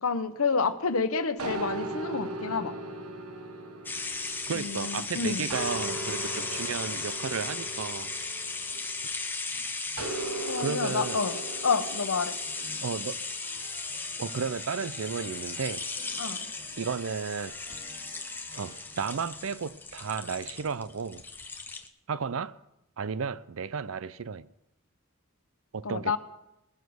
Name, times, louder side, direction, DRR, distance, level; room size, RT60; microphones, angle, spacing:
voice 1, 0.0-2.7 4.5-5.5 10.5-12.3 16.2-16.4 25.8-26.2, left 4 dB, 80° left, 0.9 m, -29 dB
sound 1, 1.4-5.0 5.5-9.2 10.0-12.6, right 2 dB, 90° right, 1.3 m, -38 dB
sound 2, 3.9-21.9, left 3 dB, 10° left, 0.6 m, -36 dB
voice 2, 4.5-8.1 10.6-11.2 12.8-13.2 14.2-15.9 16.8-17.6 18.6-21.2 22.1-22.6 23.0-24.5 25.7-26.2, right 6 dB, 70° right, 0.5 m, -33 dB
sound 3, 11.2-18.8, right 2 dB, 45° right, 2.4 m, -54 dB
20.0 x 7.1 x 6.3 m
head